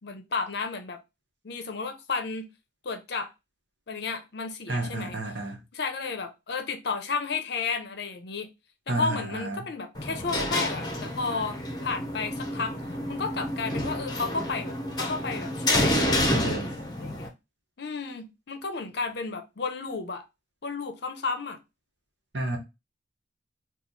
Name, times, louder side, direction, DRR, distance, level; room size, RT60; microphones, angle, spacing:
voice 1, 0.0-1.0 1.4-2.5 2.8-3.3 3.9-5.2 5.7-8.5 8.9-12.8 13.1-17.3 17.8-20.2 20.6-21.6, left 4 dB, 60° left, 0.6 m, -33 dB
voice 2, 4.7-5.6 8.9-9.7 16.3-16.7 22.3-22.6, right 2 dB, 65° right, 1.1 m, -31 dB
sound 1, 9.9-17.3, left 1 dB, 20° left, 0.8 m, -29 dB
3.0 x 2.4 x 3.8 m
head